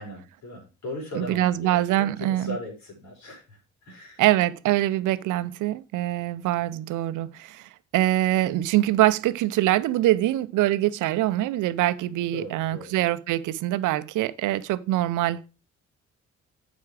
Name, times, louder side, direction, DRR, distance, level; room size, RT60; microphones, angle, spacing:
voice 1, 0.0-4.2 12.3-12.9, left 1 dB, 70° left, 6.3 m, -38 dB
voice 2, 1.2-2.6 4.2-15.5, right 14 dB, 85° right, 0.7 m, -24 dB
8.5 x 6.9 x 4.8 m
cardioid pair, 90°, 30 cm